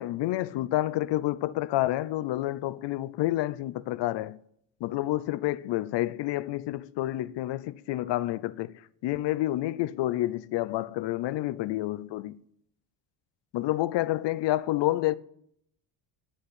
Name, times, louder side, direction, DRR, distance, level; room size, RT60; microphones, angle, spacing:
voice 1, 0.0-4.4 4.8-12.4 13.5-15.2, left 16 dB, 60° left, 0.6 m, -29 dB
10.0 x 7.9 x 8.6 m
cardioid pair, 130°, 48 cm